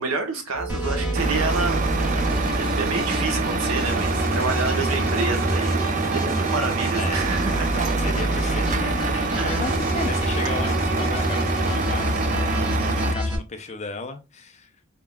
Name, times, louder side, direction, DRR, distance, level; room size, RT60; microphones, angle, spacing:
voice 1, 0.0-1.8 2.1-2.2 2.5-7.7 9.3-9.7 12.5-13.0, right 3 dB, 80° right, 1.1 m, -29 dB
sound 1, 0.5-12.3, right 2 dB, 75° left, 1.0 m, -37 dB
sound 2, 0.7-13.4, equal, 10° right, 2.3 m, -26 dB
Truck, 1.1-13.1, right 4 dB, 35° right, 0.4 m, -26 dB
voice 2, 7.0-7.3 7.7-14.7, left 3 dB, 30° left, 0.5 m, -34 dB
3.7 x 3.5 x 2.3 m
head